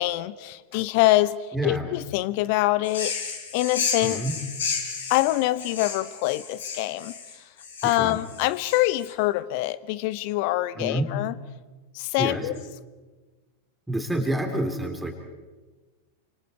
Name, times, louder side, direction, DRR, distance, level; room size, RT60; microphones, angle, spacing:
voice 1, 0.0-3.1 3.5-4.2 5.1-7.4 7.8-11.3 11.9-12.5, left 17 dB, 45° left, 18 dB, 0.7 m, -25 dB
voice 2, 1.5-1.9 4.0-4.3 7.8-8.2 10.8-11.1 12.2-12.5 13.9-15.1, right 1 dB, 5° right, 4 dB, 4.1 m, -28 dB
sound 1, 2.8-9.1, left 5 dB, 65° left, 5.0 m, -32 dB
29.0 x 26.0 x 4.8 m, 1.3 s
figure-of-eight pair, 90°, 0 cm